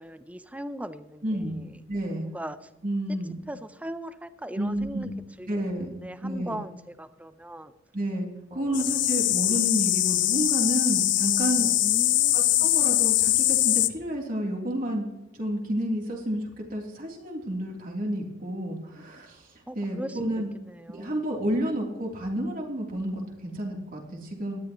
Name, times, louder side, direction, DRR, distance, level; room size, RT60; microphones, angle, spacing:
voice 1, 0.0-1.8 2.3-2.7 3.5-5.1 5.4-7.7 8.5-8.7 11.6-12.7 19.7-20.2 20.6-21.2, right 1 dB, 5° right, 12 dB, 0.6 m, -39 dB
voice 2, 1.2-1.6 1.9-2.3 2.8-3.4 4.6-5.1 5.5-5.9 6.2-6.5 7.9-11.7 12.3-15.0 15.3-19.4 19.7-20.5 20.9-24.6, right 1 dB, 45° right, -1 dB, 3.3 m, -30 dB
sound 1, 8.7-13.9, left 15 dB, 60° left, 0.6 m, -23 dB
18.0 x 12.5 x 3.1 m, 0.95 s
head